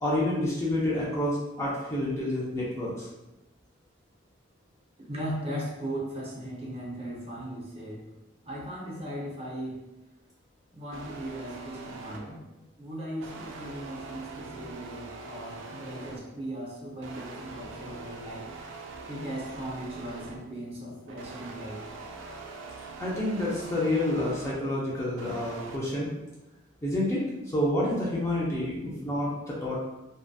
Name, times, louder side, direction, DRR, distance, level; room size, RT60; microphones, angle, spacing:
voice 1, 0.0-3.1 23.0-26.1 26.8-27.2 27.5-29.8, left 1 dB, 15° left, -6 dB, 0.4 m, -28 dB
voice 2, 5.1-8.0 8.4-9.8 10.7-12.5 12.8-18.5 19.1-21.9 28.7-28.8, right 1 dB, 30° right, -4 dB, 0.6 m, -38 dB
sound 1, 10.9-12.5 13.2-16.4 17.0-20.5 21.1-24.7 25.1-25.8, right 3 dB, 75° right, 0.3 m, -43 dB
2.6 x 2.1 x 2.3 m, 1.0 s
head